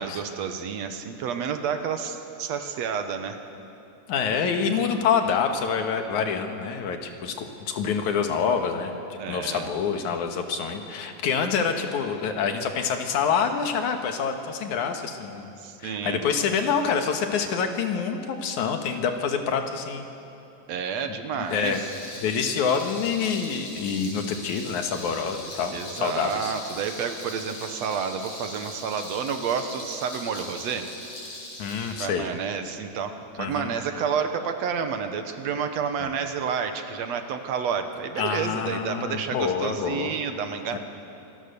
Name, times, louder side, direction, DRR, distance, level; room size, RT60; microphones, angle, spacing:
voice 1, 0.0-3.4 9.2-9.7 15.6-16.2 20.7-21.8 25.7-30.9 32.0-40.8, right 6 dB, 70° right, 7 dB, 2.2 m, -30 dB
voice 2, 4.1-9.0 9.3-15.5 15.8-20.1 21.5-21.8 22.2-26.5 31.6-32.3 33.4-33.7 36.0-36.1 38.2-40.1 40.7-40.8, left 6 dB, 85° left, 5 dB, 2.8 m, -26 dB
Rattle, 21.3-32.0, left 1 dB, 55° left, 7.5 m, -40 dB
25.5 x 18.5 x 6.8 m, 2.8 s
omnidirectional pair, 3.3 m